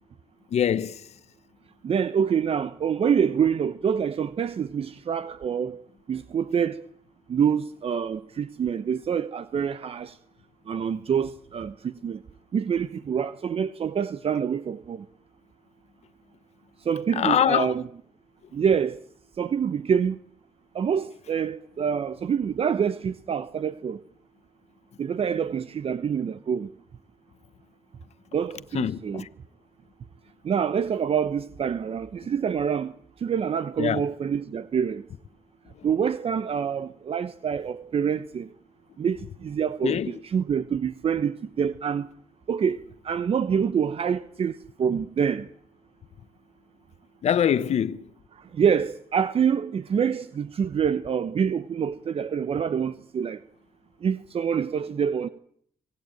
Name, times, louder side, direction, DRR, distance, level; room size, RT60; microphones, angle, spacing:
voice 1, 0.5-1.0 17.2-17.7 28.7-29.3 33.8-34.0 39.8-40.1 47.2-48.0, left 9 dB, 70° left, 1.1 m, -24 dB
voice 2, 1.8-5.8 6.1-6.8 7.3-10.2 10.7-12.2 12.5-15.1 16.8-17.8 18.5-19.0 19.4-20.2 20.7-24.0 25.0-26.7 28.3-29.2 30.4-35.0 35.8-38.5 39.0-42.1 42.5-45.5 48.3-53.4 54.0-55.3, right 7 dB, 55° right, 0.9 m, -26 dB
25.5 x 18.5 x 9.0 m
cardioid pair, 85°, 12 cm